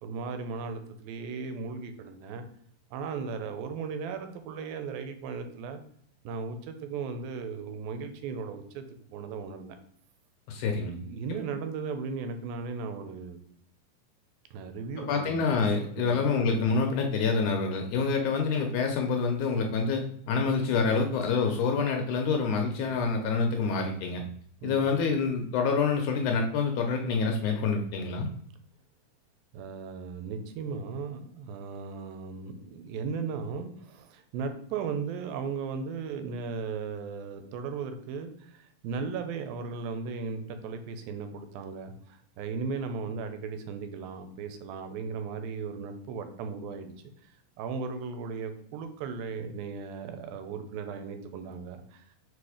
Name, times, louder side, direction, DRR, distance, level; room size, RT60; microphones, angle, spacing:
voice 1, 0.0-2.4 2.9-5.8 6.2-8.8 9.1-9.8 10.7-13.4 14.5-15.5 16.0-16.2 24.6-24.9 29.5-46.9 47.6-52.0, right 5 dB, 85° right, 8 dB, 2.6 m, -36 dB
voice 2, 10.5-11.0 15.1-24.2 24.6-28.3, left 4 dB, 75° left, 3 dB, 1.9 m, -27 dB
5.0 x 4.4 x 4.9 m, 0.65 s
omnidirectional pair, 4.1 m